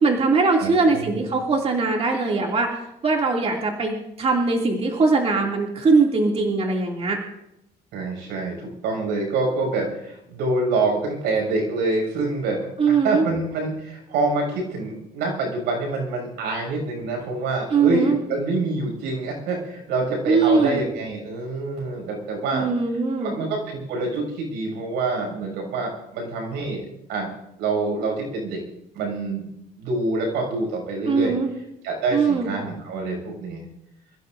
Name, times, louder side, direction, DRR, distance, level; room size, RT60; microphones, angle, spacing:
voice 1, 0.0-2.8 3.0-7.2 12.8-13.3 17.7-18.2 20.3-20.8 22.5-23.3 31.1-31.5 32.1-32.5, right 4 dB, 35° right, 0 dB, 2.7 m, -21 dB
voice 2, 0.6-1.3 7.9-22.7 23.2-27.3 27.6-28.6 28.9-29.5 29.8-31.3 31.8-33.6, right 3 dB, 90° right, 1 dB, 6.8 m, -26 dB
27.5 x 15.5 x 2.7 m, 0.83 s
cardioid pair, 110°, 17 cm